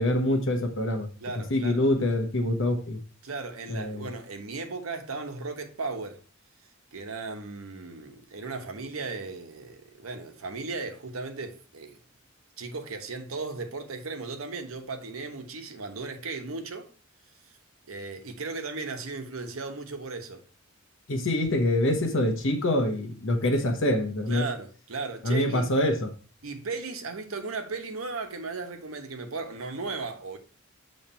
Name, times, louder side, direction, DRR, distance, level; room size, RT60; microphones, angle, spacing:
voice 1, 0.0-1.1 1.5-3.0 3.7-4.1 21.1-24.4 25.2-26.1, left 1 dB, 65° left, 1.0 m, -25 dB
voice 2, 1.2-1.8 3.2-6.2 6.9-12.0 12.6-16.9 17.9-20.4 24.3-25.8 26.4-30.4, right 3 dB, 85° right, 1.0 m, -36 dB
7.2 x 3.2 x 4.2 m
head